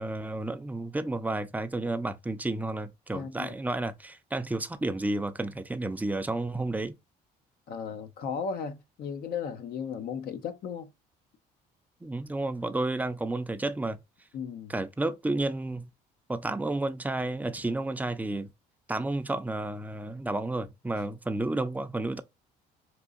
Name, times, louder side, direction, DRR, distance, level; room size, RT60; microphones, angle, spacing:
voice 1, 0.0-6.9 12.0-14.0 14.7-15.9 16.3-18.5 18.9-22.2, right 2 dB, 10° right, 0.6 m, -31 dB
voice 2, 3.1-3.5 7.7-10.9 14.3-14.7, left 6 dB, 65° left, 0.9 m, -35 dB
4.6 x 2.7 x 2.4 m
supercardioid pair, 85°, 17 cm